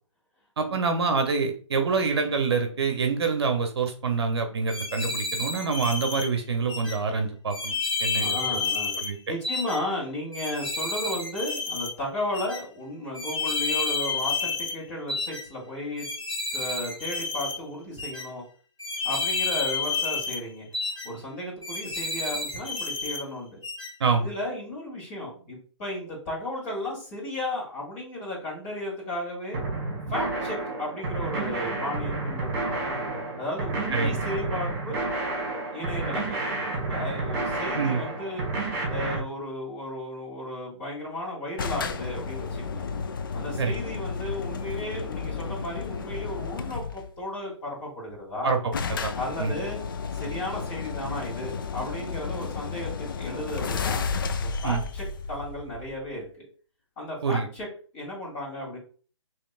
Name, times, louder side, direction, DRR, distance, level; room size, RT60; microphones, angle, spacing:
voice 1, 0.6-7.7 8.0-8.6 9.0-9.2 24.0-24.3 33.9-34.2 37.8-38.0 43.6-43.8 48.4-48.6 48.9-49.1 49.4-49.5 54.6-54.8 57.2-57.5, right 4 dB, 55° right, 5 dB, 0.8 m, -26 dB
sound 1, 4.7-6.3 6.7-7.0 7.5-9.1 9.4-9.8 10.3-11.9 12.3-12.6 13.1-14.8 15.1-15.4 16.0-17.6 18.0-18.3 18.8-20.4 20.7-21.1 21.6-23.2 23.6-23.9, left 4 dB, 80° left, 1.8 m, -30 dB
voice 2, 8.1-16.1 16.5-18.4 19.0-20.7 21.0-23.6 24.2-29.6 30.1-32.9 33.4-35.0 35.7-36.4 36.7-38.4 38.9-42.8 43.3-48.5 49.2-49.8 50.1-54.0 54.4-56.5 57.0-57.7 57.9-58.8, left 1 dB, 25° left, -3 dB, 2.1 m, -34 dB
sound 2, 29.5-39.2, right 2 dB, 35° right, 1.5 m, -30 dB
sound 3, 41.6-47.1 48.1-48.2 48.4-48.5 48.7-56.2, left 5 dB, 45° left, 0.4 m, -32 dB
5.2 x 3.1 x 2.4 m, 0.41 s
figure-of-eight pair, 150°, 16 cm